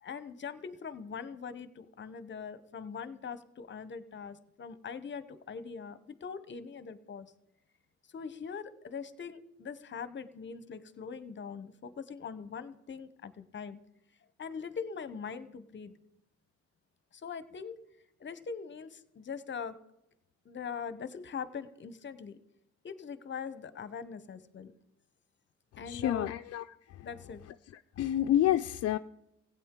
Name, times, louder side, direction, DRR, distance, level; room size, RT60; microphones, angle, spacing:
voice 1, 0.0-7.3 8.1-13.8 14.4-16.0 17.1-17.8 18.2-19.8 20.4-22.4 22.8-24.7 25.8-26.3 27.0-27.4, left 6 dB, 40° left, 0.9 m, -42 dB
voice 2, 25.9-27.1 28.0-29.0, left 12 dB, 55° left, 0.4 m, -29 dB
16.0 x 8.8 x 3.7 m
cardioid pair, 90°, 30 cm